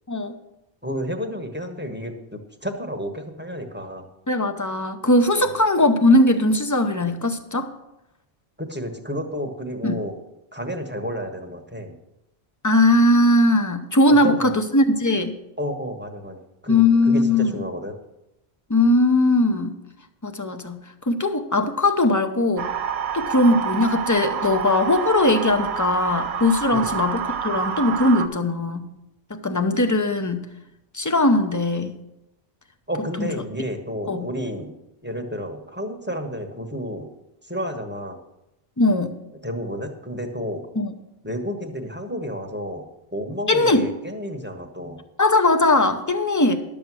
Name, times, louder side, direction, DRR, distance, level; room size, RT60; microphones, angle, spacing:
voice 1, 0.8-4.1 5.4-5.5 8.6-10.1 10.5-12.0 14.1-14.5 15.6-17.9 26.7-26.9 32.9-34.7 35.0-37.1 37.4-38.2 39.4-40.7 41.2-42.9 43.1-45.0, equal, 10° right, 4 dB, 1.1 m, -31 dB
voice 2, 4.3-7.7 9.8-10.0 12.6-15.3 16.7-17.6 18.7-19.7 20.2-20.8 21.1-22.7 23.1-28.9 29.3-30.5 30.9-31.9 33.2-33.3 34.1-34.3 38.8-39.1 40.8-40.9 43.5-43.9 45.2-46.6, left 2 dB, 20° left, 7 dB, 0.7 m, -19 dB
sound 1, 22.6-28.3, right 7 dB, 80° right, 1.0 m, -28 dB
11.5 x 7.1 x 6.2 m, 0.88 s
omnidirectional pair, 1.1 m